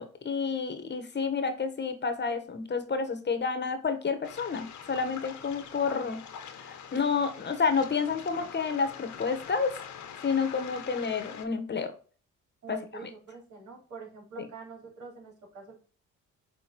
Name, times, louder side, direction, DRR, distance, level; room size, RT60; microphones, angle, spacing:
voice 1, 0.0-9.8 10.2-11.9 12.7-13.1 14.4-14.5, left 5 dB, 35° left, 8 dB, 1.2 m, -30 dB
Waves surf, 4.2-11.4, left 8 dB, 70° left, 1.3 m, -44 dB
voice 2, 12.6-15.8, right 5 dB, 75° right, -1 dB, 3.8 m, -45 dB
6.0 x 3.8 x 5.1 m, 0.38 s
cardioid pair, 90°, 30 cm